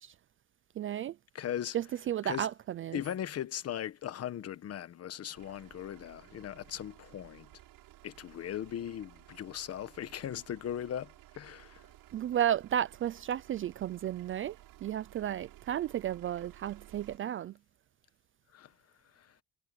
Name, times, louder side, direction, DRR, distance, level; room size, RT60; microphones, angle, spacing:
voice 1, 0.8-1.1 1.7-3.0 12.1-14.6 14.8-17.5, right 11 dB, 35° right, 0.4 m, -33 dB
voice 2, 1.3-1.8 2.2-2.5 2.9-7.5 8.0-11.8 18.5-18.7 19.2-19.3, left 10 dB, 45° left, 1.2 m, -38 dB
sound 1, 5.3-17.2, right 15 dB, 85° right, 7.2 m, -56 dB
cardioid pair, 155°, 35 cm